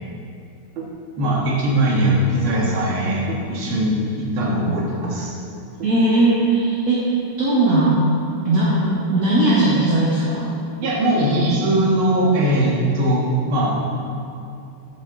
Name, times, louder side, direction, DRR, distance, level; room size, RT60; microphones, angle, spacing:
voice 1, 1.2-5.3 10.8-13.8, right 1 dB, 70° right, -4 dB, 2.3 m, -20 dB
voice 2, 5.8-8.0 8.4-10.5, right 2 dB, 45° right, -7 dB, 1.6 m, -18 dB
9.0 x 8.3 x 3.7 m, 2.5 s
omnidirectional pair, 2.4 m